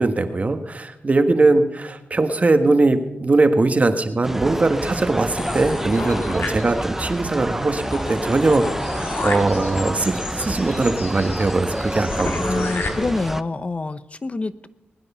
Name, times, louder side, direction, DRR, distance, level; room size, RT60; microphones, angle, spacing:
voice 1, 0.0-12.6, right 3 dB, 40° right, 7 dB, 1.5 m, -20 dB
sound 1, 4.2-13.4, right 1 dB, 10° right, 0.6 m, -28 dB
sound 2, 5.4-7.0 7.4-7.5 7.8-12.9, left 3 dB, 70° left, 1.9 m, -32 dB
voice 2, 12.4-14.7, left 3 dB, 35° left, 14 dB, 0.8 m, -26 dB
21.0 x 9.7 x 5.6 m, 0.83 s
cardioid pair, 70°, 4 cm